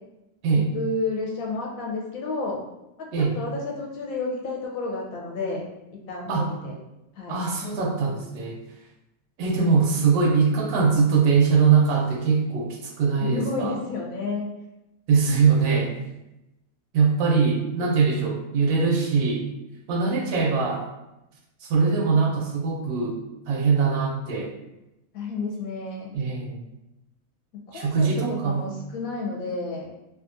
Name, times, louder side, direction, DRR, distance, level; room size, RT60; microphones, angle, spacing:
voice 1, 0.7-2.6 3.0-5.6 6.1-6.8 7.2-7.4 13.2-14.5 25.1-26.1 27.7-29.9, left 3 dB, 70° left, -2 dB, 0.9 m, -31 dB
voice 2, 7.3-8.6 9.4-13.8 15.1-15.9 16.9-19.5 19.9-20.9 21.6-23.2 23.5-24.5 26.1-26.6 27.7-28.7, right 5 dB, 80° right, 0 dB, 1.1 m, -22 dB
2.8 x 2.4 x 2.5 m, 0.93 s
omnidirectional pair, 1.6 m